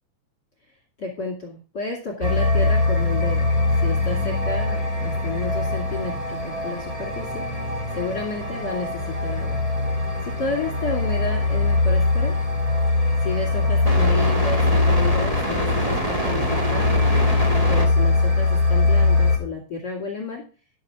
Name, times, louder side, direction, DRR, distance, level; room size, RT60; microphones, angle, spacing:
voice 1, 1.0-3.5 3.8-7.5 7.9-9.6 10.2-12.4 13.2-17.0 17.7-20.4, left 3 dB, 30° left, 1 dB, 2.5 m, -31 dB
sound 1, 2.2-19.4, left 2 dB, 20° right, 0.9 m, -21 dB
10.0 x 7.6 x 4.8 m, 0.34 s
omnidirectional pair, 4.4 m